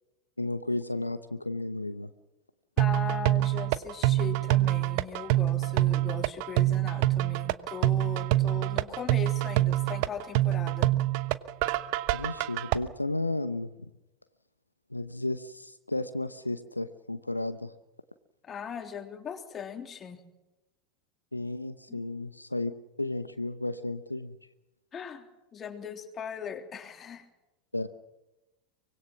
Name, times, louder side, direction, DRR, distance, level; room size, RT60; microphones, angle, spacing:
voice 1, 0.4-2.1 12.1-13.7 14.9-17.7 21.3-22.7 23.0-24.3 27.7-27.9, left 2 dB, 85° left, 12 dB, 0.9 m, -33 dB
voice 2, 2.8-10.9 18.4-20.2 21.9-22.0 24.9-27.3, left 7 dB, 25° left, 6 dB, 3.2 m, -39 dB
sound 1, 2.8-12.8, right 16 dB, 50° right, 1.0 m, -26 dB
24.5 x 21.5 x 6.1 m, 0.99 s
figure-of-eight pair, 85°, 0 cm